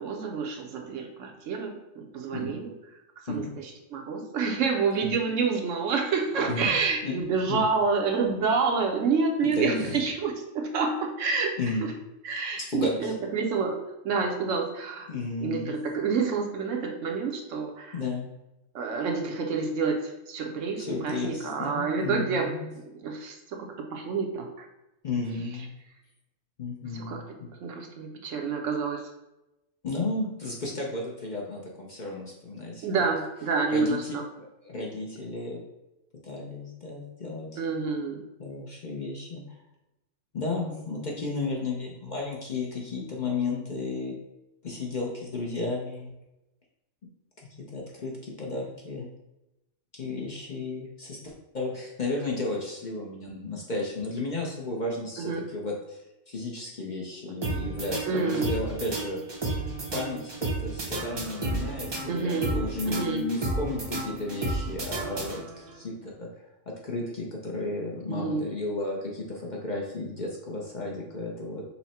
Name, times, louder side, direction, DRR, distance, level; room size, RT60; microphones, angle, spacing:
voice 1, 0.0-2.7 3.2-11.5 11.8-11.9 12.2-13.8 14.0-15.1 15.4-17.9 18.7-22.5 22.9-24.7 26.9-27.2 27.6-29.1 32.8-34.2 37.6-38.2 55.2-55.4 58.1-58.5 62.1-62.6 62.9-63.3 68.1-68.5, right 4 dB, 75° right, 2 dB, 1.0 m, -28 dB
voice 2, 9.5-10.0 11.6-11.9 12.6-13.1 15.1-15.7 17.9-18.3 20.8-22.7 25.0-25.7 26.6-27.5 29.8-32.9 33.7-34.2 34.6-35.6 36.2-37.6 38.4-39.4 40.3-44.2 44.6-46.1 47.7-49.1 49.9-59.4 59.9-66.3 66.7-71.6, left 2 dB, 45° left, -2 dB, 0.7 m, -33 dB
sound 1, 57.4-65.7, right 2 dB, 30° right, 0.5 m, -32 dB
5.6 x 2.1 x 4.1 m, 0.94 s
omnidirectional pair, 1.3 m